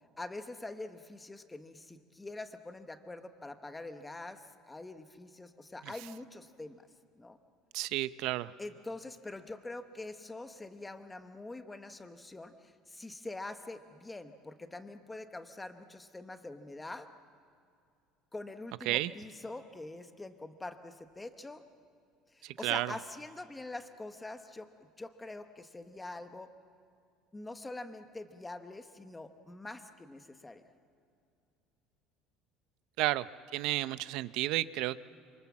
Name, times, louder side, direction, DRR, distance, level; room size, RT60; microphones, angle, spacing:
voice 1, 0.2-6.9 7.1-7.4 8.6-17.1 18.3-21.6 22.3-24.7 25.0-26.5 27.3-30.7, left 2 dB, 10° left, 8 dB, 1.0 m, -44 dB
voice 2, 7.7-8.5 18.9-19.1 22.4-22.9 33.0-33.3 33.5-35.0, right 16 dB, 60° right, 15 dB, 0.6 m, -31 dB
27.5 x 26.0 x 7.4 m, 2.5 s
cardioid pair, 175°, 0 cm